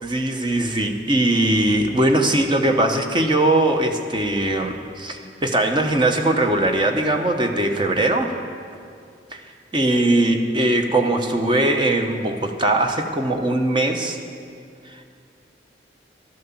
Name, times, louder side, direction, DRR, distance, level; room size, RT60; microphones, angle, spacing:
voice 1, 0.0-8.3 9.3-9.4 9.7-14.2 14.9-15.1, right 1 dB, 25° right, 4 dB, 1.0 m, -20 dB
12.5 x 10.5 x 7.3 m, 2.4 s
head